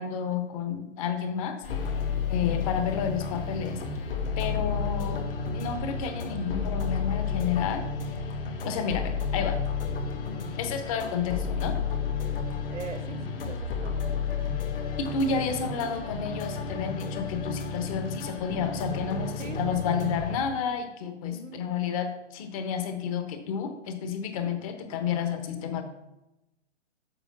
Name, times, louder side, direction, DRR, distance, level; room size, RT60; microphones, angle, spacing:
voice 1, 0.0-1.6 2.3-3.8 4.4-5.2 5.5-7.8 8.6-9.6 10.6-11.8 15.0-25.8, left 6 dB, 30° left, 7 dB, 0.9 m, -30 dB
sound 1, 1.6-20.4, left 5 dB, 50° left, 1.3 m, -31 dB
voice 2, 10.2-10.6 12.7-14.7 19.4-20.0 21.3-21.6, right 4 dB, 85° right, 9 dB, 1.2 m, -44 dB
7.0 x 5.0 x 6.0 m, 0.92 s
hypercardioid pair, 135°, 36 cm